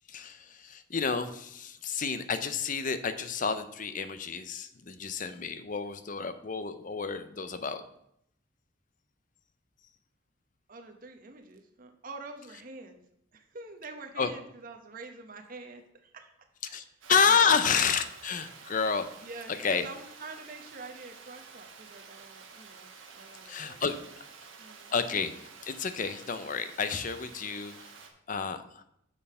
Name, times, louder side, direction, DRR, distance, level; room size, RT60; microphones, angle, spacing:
voice 1, 0.1-7.8 14.2-14.3 16.6-19.1 19.5-19.9 23.4-24.2 24.9-25.3 25.6-27.9 28.3-28.8, left 6 dB, 40° left, 11 dB, 0.6 m, -30 dB
voice 2, 10.7-13.0 13.3-16.3 16.7-16.9 17.2-17.6 19.2-23.8 24.6-24.9, right 3 dB, 45° right, 4 dB, 0.9 m, -46 dB
Water, 17.0-28.1, right 5 dB, 80° right, 1.2 m, -50 dB
6.6 x 5.5 x 5.5 m, 0.75 s
head